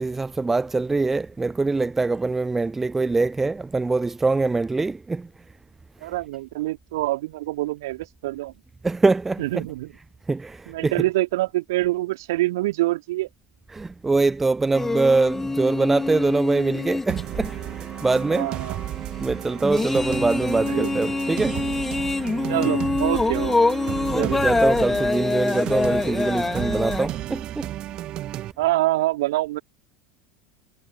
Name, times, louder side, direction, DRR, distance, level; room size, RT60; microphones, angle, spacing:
voice 1, 0.0-5.3 8.8-9.4 10.3-10.9 13.7-17.5 18.0-18.5 19.2-21.6 24.1-27.7, right 3 dB, 10° right, 0.5 m, -23 dB
voice 2, 6.0-8.5 9.4-9.9 10.7-13.3 18.3-18.8 20.6-20.9 22.5-23.8 24.2-24.4 28.6-29.6, right 17 dB, 60° right, 3.6 m, -25 dB
sound 1, 14.7-27.1, left 3 dB, 10° left, 3.2 m, -26 dB
sound 2, 17.1-28.5, right 14 dB, 40° right, 2.0 m, -33 dB
figure-of-eight pair, 75°, 2 cm